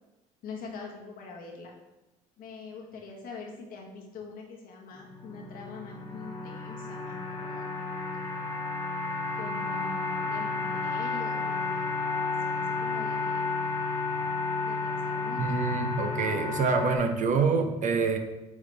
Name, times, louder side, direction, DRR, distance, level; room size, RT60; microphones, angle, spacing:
voice 1, 0.4-1.7 2.4-7.7 9.3-13.5 14.6-15.7, left 4 dB, 65° left, 0 dB, 1.4 m, -44 dB
Resonant Swell, 4.9-17.0, left 4 dB, 25° left, 1.4 m, -32 dB
voice 2, 15.4-18.2, right 4 dB, 50° right, 5 dB, 0.8 m, -26 dB
8.1 x 3.7 x 3.4 m, 1.0 s
hypercardioid pair, 70°, 16 cm